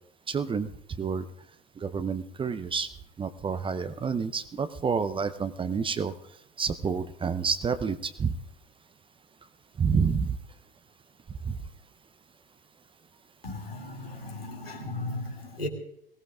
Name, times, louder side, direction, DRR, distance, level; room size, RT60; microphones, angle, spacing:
voice 1, 0.3-0.7 1.0-1.2 1.8-2.9 3.2-6.1 6.6-8.3 9.8-10.4 11.4-11.6, right 5 dB, 20° right, 12 dB, 0.7 m, -29 dB
voice 2, 13.4-15.7, left 2 dB, 90° left, 0 dB, 2.6 m, -36 dB
22.5 x 17.5 x 2.4 m, 0.74 s
figure-of-eight pair, 75°, 29 cm